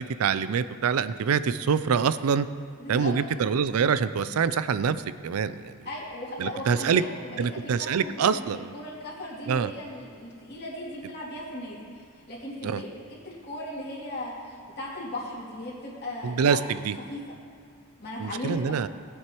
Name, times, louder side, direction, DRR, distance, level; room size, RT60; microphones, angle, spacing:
voice 1, 0.0-2.5 2.9-5.0 5.2-5.7 6.4-7.0 7.4-8.7 9.5-9.7 12.6-12.8 16.2-17.0 18.2-18.9, right 6 dB, 75° right, 14 dB, 0.4 m, -25 dB
voice 2, 2.8-3.1 5.8-11.8 12.1-12.9 13.2-16.6 17.1-17.2 18.0-18.7, left 1 dB, 45° left, -8 dB, 2.6 m, -37 dB
19.0 x 7.9 x 3.0 m, 2.2 s
head